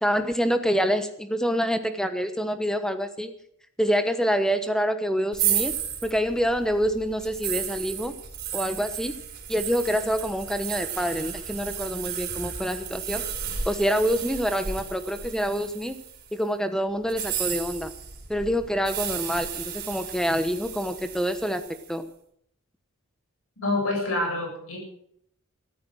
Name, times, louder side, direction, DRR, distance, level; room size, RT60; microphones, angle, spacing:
voice 1, 0.0-3.3 3.8-5.8 6.0-8.1 8.5-9.1 9.5-13.2 13.7-16.0 16.3-17.9 18.3-21.6 21.9-22.1, equal, 5° left, 9 dB, 1.1 m, -26 dB
sound 1, 5.3-16.3 17.0-21.9, right 9 dB, 50° right, 3.9 m, -33 dB
voice 2, 23.6-24.8, left 2 dB, 75° left, 2 dB, 7.4 m, -26 dB
15.0 x 13.0 x 6.3 m, 0.68 s
head